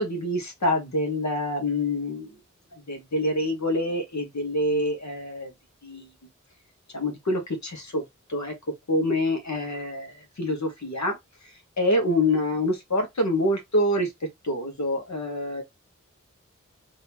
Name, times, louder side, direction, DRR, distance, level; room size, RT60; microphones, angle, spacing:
voice 1, 0.0-2.3 2.9-5.5 5.8-6.1 6.9-8.0 8.3-8.5 8.9-11.2 11.8-14.1 14.4-15.6, left 1 dB, 65° left, 1.4 m, -26 dB
3.6 x 3.0 x 2.9 m
wide cardioid pair, 55°, 30 cm